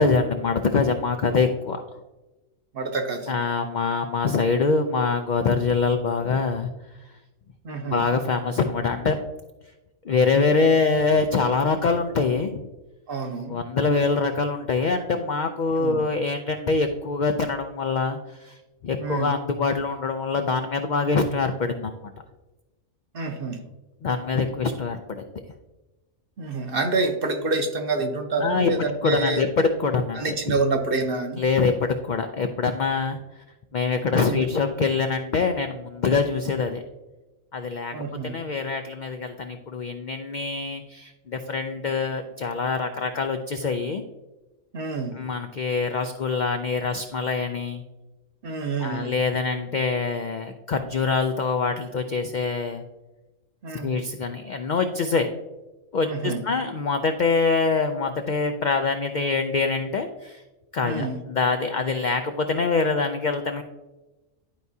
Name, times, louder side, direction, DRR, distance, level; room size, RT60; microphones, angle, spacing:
voice 1, 0.0-1.8 3.3-6.7 7.9-9.2 10.1-12.7 13.5-18.6 18.8-21.9 24.0-25.2 28.4-28.7 29.0-30.6 31.4-33.2 33.7-36.8 37.5-37.9 38.2-44.0 45.1-47.8 48.8-52.8 53.8-55.3 55.9-60.4 60.7-63.6, left 4 dB, 75° left, 6 dB, 0.4 m, -24 dB
voice 2, 2.7-3.3 7.6-8.0 13.1-13.6 15.7-16.0 19.0-19.3 23.1-23.6 26.4-29.4 30.2-31.4 34.1-34.4 37.9-38.3 44.7-45.2 48.4-49.1 53.6-53.9 56.0-56.4 60.8-61.2, right 3 dB, 50° right, 5 dB, 0.9 m, -27 dB
11.5 x 4.7 x 2.7 m, 1.1 s
omnidirectional pair, 1.4 m